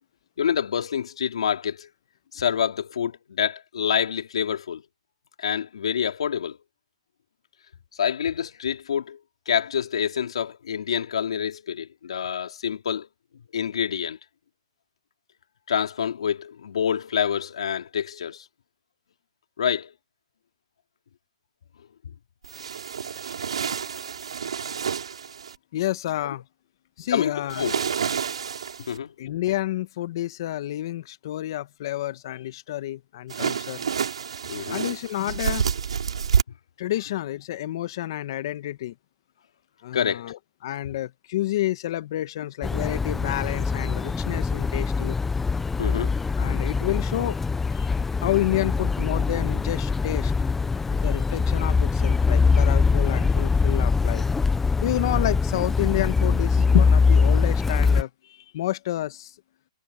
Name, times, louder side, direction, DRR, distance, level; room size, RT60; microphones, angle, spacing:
voice 1, 0.4-1.9 2.3-4.8 5.4-6.6 7.9-9.2 9.5-13.1 13.5-14.2 15.7-18.4 19.6-19.9 22.0-22.1 27.1-27.9 28.9-29.1 34.5-34.8 39.9-40.4 45.8-46.1, left 8 dB, 75° left, 3.1 m, -27 dB
sound 1, 22.4-25.6 27.5-29.0 33.3-36.4, right 7 dB, 85° right, 5.2 m, -28 dB
voice 2, 25.7-26.4 27.0-27.6 29.2-33.8 34.7-35.7 36.8-38.9 39.8-45.2 46.4-47.4 47.7-47.9 48.2-50.3 50.9-54.2 54.8-59.3, left 14 dB, 50° left, 1.4 m, -29 dB
sound 2, 42.6-58.0, left 4 dB, 5° left, 0.7 m, -23 dB
hypercardioid pair, 155°, 3 cm